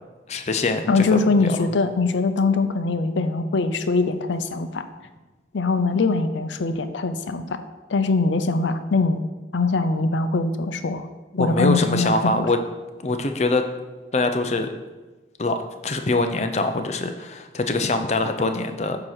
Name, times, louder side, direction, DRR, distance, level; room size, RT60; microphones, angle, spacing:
voice 1, 0.3-1.6 11.3-12.6 13.0-13.6 14.1-14.7 15.4-19.0, left 2 dB, 35° left, 7 dB, 0.5 m, -23 dB
voice 2, 0.9-4.8 5.5-7.6 7.9-9.2 9.5-11.1 11.4-12.5, left 3 dB, 85° left, 9 dB, 0.5 m, -22 dB
8.7 x 2.9 x 6.3 m, 1.2 s
head